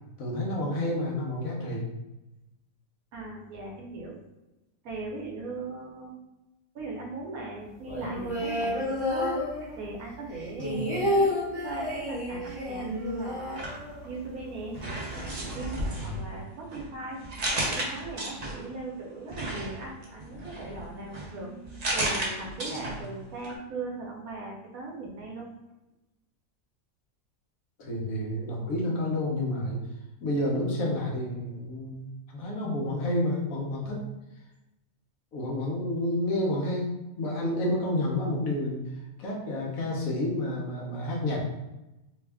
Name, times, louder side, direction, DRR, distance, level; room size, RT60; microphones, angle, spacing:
voice 1, 0.2-1.9 10.6-10.8 15.9-16.3 22.7-23.0 27.8-29.8 30.2-34.0 35.3-38.9 39.2-41.4, left 1 dB, 75° left, -2 dB, 1.3 m, -30 dB
voice 2, 3.1-4.2 4.8-6.2 6.7-9.4 9.7-13.7 14.0-14.8 15.5-17.2 17.6-21.5 21.9-25.5, right 3 dB, 80° right, -1 dB, 1.3 m, -38 dB
sound 1, 7.8-10.0 10.3-14.3 14.6-14.7 14.9-15.4, left 1 dB, 20° right, 1.1 m, -30 dB
sound 2, 13.4-14.4 14.7-18.8 19.3-23.2 23.4-23.5, right 1 dB, 40° right, 0.6 m, -34 dB
3.3 x 2.3 x 3.4 m, 1.0 s
omnidirectional pair, 1.5 m